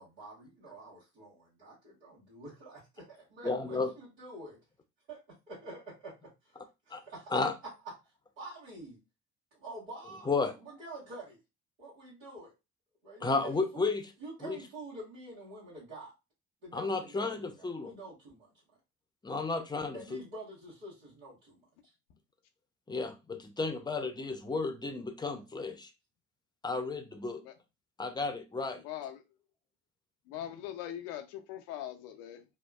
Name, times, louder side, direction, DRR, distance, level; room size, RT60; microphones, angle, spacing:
voice 1, 0.0-4.6 5.1-5.2 5.5-7.3 8.4-9.0 9.5-10.3 10.6-11.4 11.8-12.5 13.0-13.9 14.2-16.1 16.6-18.5 19.9-21.9 25.2-25.4, right 2 dB, 85° right, 1.4 m, -48 dB
voice 2, 3.4-3.9 6.9-7.0 7.3-7.5 10.3-10.5 13.2-14.1 14.4-14.6 16.7-17.9 19.2-20.2 22.9-25.9 26.6-27.4 28.0-28.8, left 3 dB, 10° left, 0.5 m, -33 dB
voice 3, 28.7-29.2 30.3-32.4, left 11 dB, 75° left, 0.5 m, -41 dB
2.8 x 2.2 x 2.2 m
hypercardioid pair, 50°, 35 cm